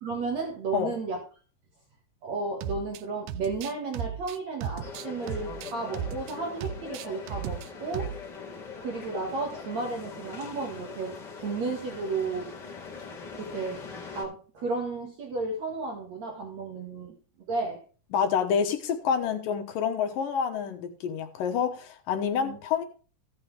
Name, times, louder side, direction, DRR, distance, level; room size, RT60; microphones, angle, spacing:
voice 1, 0.0-1.2 2.2-8.1 8.8-12.5 13.4-13.8 14.1-17.2 17.5-17.8 22.4-22.6, right 3 dB, 55° right, 1 dB, 3.0 m, -33 dB
sound 1, 2.6-3.0 3.3-6.3 6.6-7.7 7.9-8.2, right 9 dB, 75° right, 2.1 m, -35 dB
sound 2, 4.8-14.2, left 5 dB, 35° left, 2.8 m, -42 dB
voice 2, 18.1-22.8, left 7 dB, 80° left, 5 dB, 2.9 m, -28 dB
15.5 x 7.5 x 3.4 m, 0.37 s
omnidirectional pair, 3.9 m